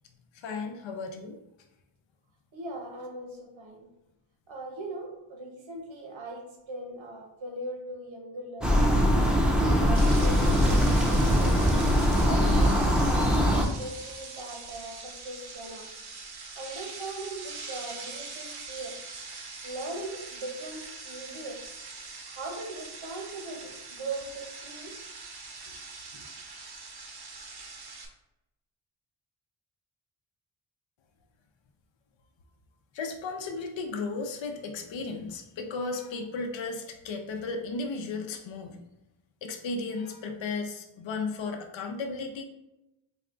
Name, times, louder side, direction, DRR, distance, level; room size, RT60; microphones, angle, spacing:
voice 1, 0.3-1.4 32.9-38.9 39.4-42.4, left 3 dB, 65° left, 4 dB, 0.6 m, -35 dB
voice 2, 2.5-3.9 4.5-9.0 9.6-11.5 12.3-15.9 16.6-19.0 19.6-21.6 22.2-25.0 25.7-25.8, right 2 dB, 70° right, 0 dB, 1.1 m, -39 dB
sound 1, 8.6-13.6, equal, ahead, 0.6 m, -22 dB
sound 2, 9.9-28.1, right 3 dB, 50° right, 0.8 m, -42 dB
4.2 x 2.3 x 3.7 m, 0.94 s
cardioid pair, 70°, 49 cm